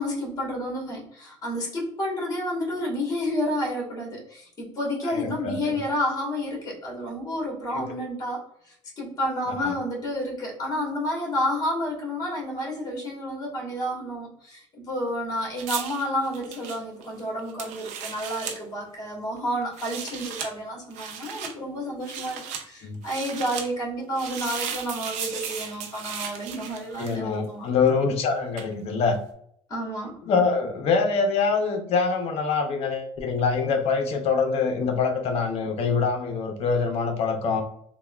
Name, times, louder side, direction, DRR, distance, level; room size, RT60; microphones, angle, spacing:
voice 1, 0.0-8.4 9.0-27.6 29.7-30.1, equal, 30° left, -2 dB, 1.4 m, -30 dB
voice 2, 5.0-5.8 7.7-7.8 9.5-9.7 22.8-23.0 27.0-29.2 30.2-37.6, left 5 dB, 55° left, 5 dB, 0.6 m, -25 dB
sound 1, 15.6-18.6 19.6-20.5 20.9-21.5 22.0-22.6 23.0-23.7 24.1-27.3 28.6-28.7, right 7 dB, 80° right, 0.5 m, -35 dB
3.4 x 2.2 x 2.3 m, 0.68 s
cardioid pair, 120°, 12 cm